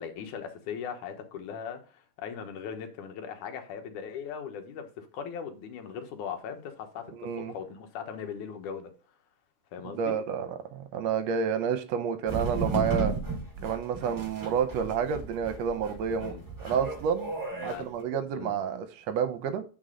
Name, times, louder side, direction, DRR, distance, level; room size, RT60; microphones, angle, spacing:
voice 1, 0.0-7.1 7.4-8.9 9.7-10.2 16.2-16.4 17.5-17.9 18.4-18.5, left 7 dB, 75° left, 2.6 m, -39 dB
voice 2, 7.2-7.5 9.9-13.1 13.6-16.3 16.6-17.3 17.6-19.6, right 7 dB, 70° right, 1.7 m, -29 dB
sound 1, 12.3-17.8, right 3 dB, 20° right, 0.5 m, -34 dB
9.4 x 4.2 x 3.8 m
omnidirectional pair, 3.6 m